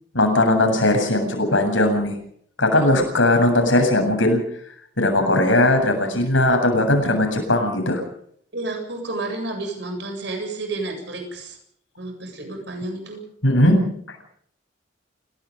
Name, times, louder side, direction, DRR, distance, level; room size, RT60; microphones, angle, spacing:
voice 1, 0.1-2.1 2.6-4.4 5.0-8.0 13.4-13.8, left 1 dB, 75° left, 4 dB, 7.8 m, -18 dB
voice 2, 8.5-11.6 12.0-13.2, right 2 dB, 60° right, 5 dB, 7.8 m, -30 dB
30.0 x 18.0 x 5.3 m, 0.64 s
head